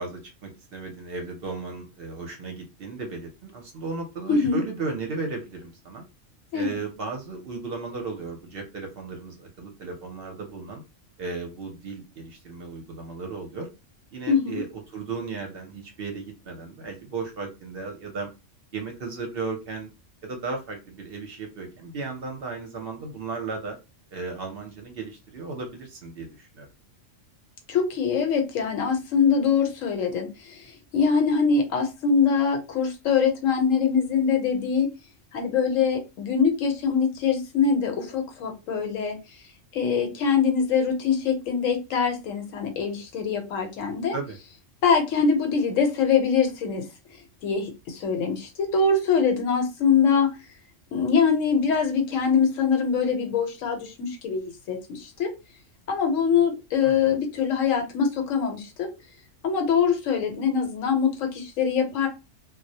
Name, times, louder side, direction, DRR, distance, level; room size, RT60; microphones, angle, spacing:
voice 1, 0.0-6.0 6.5-10.8 11.2-13.7 14.1-14.7 14.9-18.3 18.7-19.9 20.2-23.8 24.1-26.7 44.1-44.4 56.8-57.2, right 4 dB, 60° right, 3 dB, 0.7 m, -35 dB
voice 2, 4.3-4.6 6.5-6.8 14.3-14.6 27.7-30.6 30.9-34.9 35.3-39.2 39.7-44.2 44.8-46.8 47.4-50.3 50.9-55.3 55.9-58.9 59.4-62.1, left 6 dB, 85° left, 4 dB, 1.1 m, -23 dB
2.3 x 2.0 x 2.6 m, 0.27 s
omnidirectional pair, 1.3 m